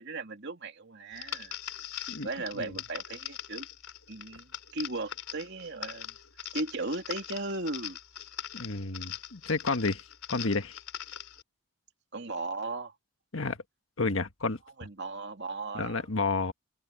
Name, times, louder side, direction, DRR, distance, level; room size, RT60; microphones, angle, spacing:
voice 1, 0.0-1.6 2.2-3.7 4.1-6.1 6.5-8.0 12.1-12.9 14.8-16.1, right 2 dB, 55° right, 2.7 m, -37 dB
sound 1, 1.1-11.4, left 11 dB, 80° left, 4.2 m, -41 dB
voice 2, 8.5-10.0 10.3-10.8 13.3-13.6 14.0-14.9 15.7-16.5, left 3 dB, 65° left, 1.5 m, -31 dB
head